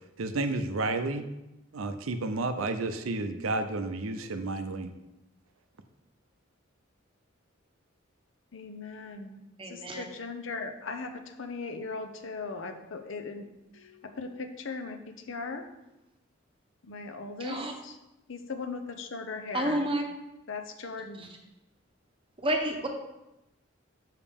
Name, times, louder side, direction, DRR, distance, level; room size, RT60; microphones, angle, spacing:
voice 1, 0.2-1.2 1.7-4.9, right 2 dB, 85° right, 8 dB, 0.6 m, -31 dB
voice 2, 8.5-13.5 13.7-15.6 16.8-18.0 18.3-19.8 20.5-21.3, left 4 dB, 65° left, 6 dB, 0.7 m, -38 dB
voice 3, 9.6-10.0 17.4-17.7 19.5-20.0 21.2-21.3 22.4-22.9, right 1 dB, 25° right, 3 dB, 0.9 m, -30 dB
6.9 x 5.6 x 3.6 m, 0.94 s
head